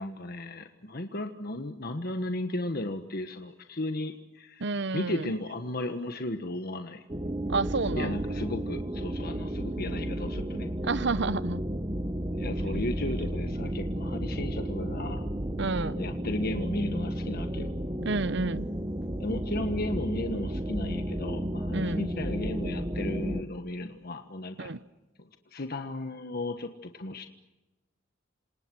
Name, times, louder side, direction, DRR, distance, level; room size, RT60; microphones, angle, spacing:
voice 1, 0.0-4.6 4.9-7.0 7.9-10.7 12.4-15.2 15.9-17.7 19.2-24.7 25.5-27.3, left 1 dB, 50° left, 7 dB, 1.4 m, -35 dB
voice 2, 4.6-5.3 7.5-8.2 10.8-11.6 15.6-15.9 18.0-18.6 21.7-22.1 24.6-24.8, right 3 dB, 65° right, 17 dB, 0.9 m, -30 dB
sound 1, 7.1-23.4, right 1 dB, 20° right, 1.2 m, -32 dB
28.0 x 27.0 x 6.3 m, 1.1 s
head